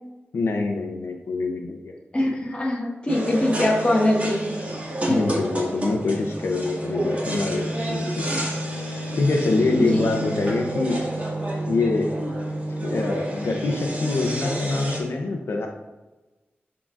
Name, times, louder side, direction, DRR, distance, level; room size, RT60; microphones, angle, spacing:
voice 1, 0.3-1.9 5.1-8.3 9.2-11.0 11.7-12.1 12.8-15.7, left 3 dB, 80° left, 3 dB, 0.6 m, -25 dB
voice 2, 2.1-4.5 5.1-5.4 9.7-10.1, left 1 dB, 25° left, -2 dB, 1.2 m, -22 dB
sound 1, 3.1-15.0, right 1 dB, 35° right, 1.9 m, -29 dB
11.0 x 3.8 x 2.5 m, 1.1 s
wide cardioid pair, 120°, 4 cm